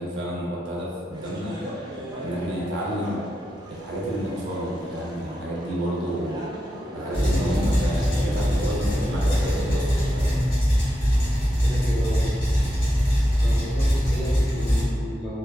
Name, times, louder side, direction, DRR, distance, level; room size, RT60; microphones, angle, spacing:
voice 1, 0.0-1.6 2.2-3.2 3.7-6.5 6.9-10.4, equal, 90° right, -4 dB, 0.5 m, -30 dB
sound 1, 1.1-10.2, right 1 dB, 25° right, 0.3 m, -38 dB
sound 2, 7.1-14.8, equal, 30° left, 1.4 m, -22 dB
voice 2, 11.4-12.3 13.4-15.4, equal, ahead, -10 dB, 0.7 m, -34 dB
3.3 x 2.0 x 2.2 m, 2.3 s
head